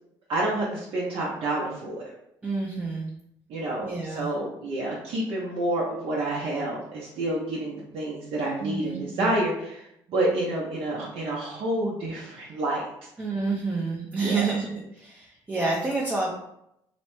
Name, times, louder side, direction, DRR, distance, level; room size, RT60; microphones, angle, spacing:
voice 1, 0.3-2.0 3.5-12.9 14.2-14.6, right 1 dB, 65° right, -5 dB, 0.7 m, -29 dB
voice 2, 2.4-3.1 3.8-4.3 8.6-9.4 13.2-16.3, right 3 dB, 15° right, -5 dB, 0.6 m, -29 dB
3.0 x 2.1 x 3.0 m, 0.78 s
supercardioid pair, 80°, 10 cm